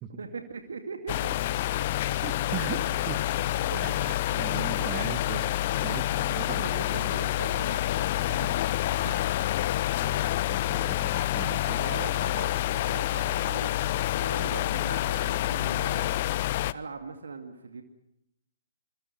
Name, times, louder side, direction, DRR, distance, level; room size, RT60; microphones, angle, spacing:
voice 1, 0.1-1.6 3.7-3.8 4.3-5.0 6.2-8.1 11.2-13.7 14.2-16.1 16.7-17.8, right 4 dB, 70° right, 5 dB, 2.3 m, -41 dB
sound 1, 1.1-16.7, left 14 dB, 45° left, 0.8 m, -28 dB
voice 2, 2.2-3.2 3.8-5.5 5.8-7.1 8.3-8.7 9.0-9.5 10.0-11.8, right 9 dB, 30° right, 8 dB, 2.2 m, -39 dB
27.5 x 24.0 x 6.2 m, 0.81 s
figure-of-eight pair, 120°, 0 cm